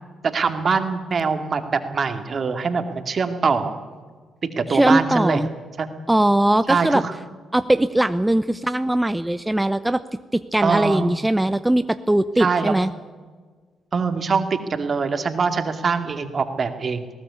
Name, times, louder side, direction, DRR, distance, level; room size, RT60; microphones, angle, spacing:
voice 1, 0.2-3.7 4.6-5.4 5.8-5.9 6.7-7.1 10.6-11.1 12.4-12.7 13.9-17.1, right 5 dB, 50° right, 7 dB, 2.4 m, -23 dB
voice 2, 4.7-5.5 6.1-7.0 7.5-12.9, right 1 dB, 10° right, 12 dB, 0.7 m, -20 dB
19.5 x 18.0 x 8.5 m, 1.5 s
hypercardioid pair, 45°, 0 cm